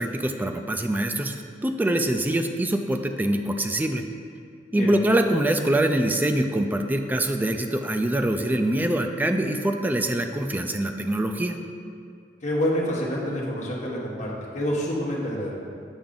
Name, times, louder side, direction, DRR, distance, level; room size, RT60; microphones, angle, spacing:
voice 1, 0.0-4.0 4.7-11.6, right 1 dB, 10° right, 5 dB, 0.3 m, -24 dB
voice 2, 12.4-15.5, equal, 45° left, -4 dB, 1.1 m, -27 dB
7.1 x 4.8 x 3.8 m, 2.4 s
head